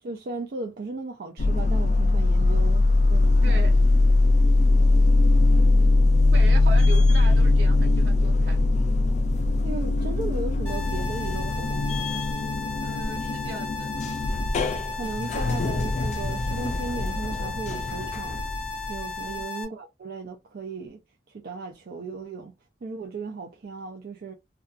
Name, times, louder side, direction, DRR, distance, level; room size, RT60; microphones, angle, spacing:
voice 1, 0.0-3.9 9.6-12.2 14.9-18.4 18.9-21.0 21.3-22.5 22.8-24.3, right 3 dB, 60° right, 0.4 m, -36 dB
sound 1, 1.4-19.4, left 2 dB, 40° left, 0.3 m, -21 dB
voice 2, 3.4-3.8 6.3-8.6 12.8-13.9 19.2-19.5, right 2 dB, 75° right, 1.0 m, -38 dB
sound 2, 10.6-19.6, left 3 dB, 10° left, 0.9 m, -35 dB
2.6 x 2.2 x 2.3 m
head